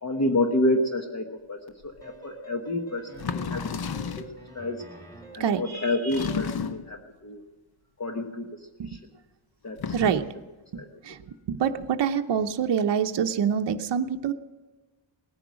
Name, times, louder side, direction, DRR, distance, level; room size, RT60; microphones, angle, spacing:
voice 1, 0.0-3.6 4.2-4.3 4.5-4.8 5.3-7.4 8.0-8.5 8.8-9.0 9.6-9.8 10.7-10.9, left 1 dB, 35° left, 3 dB, 1.2 m, -28 dB
sound 1, 2.0-2.1 3.1-4.4 6.1-7.0 9.7-10.3, left 6 dB, 50° left, 0.8 m, -32 dB
sound 2, 2.0-5.6, right 2 dB, 5° left, 2.7 m, -47 dB
voice 2, 9.9-10.3 10.7-11.2 11.5-14.3, right 7 dB, 60° right, 5 dB, 0.8 m, -26 dB
19.0 x 10.0 x 6.2 m, 1.3 s
wide cardioid pair, 155°, 48 cm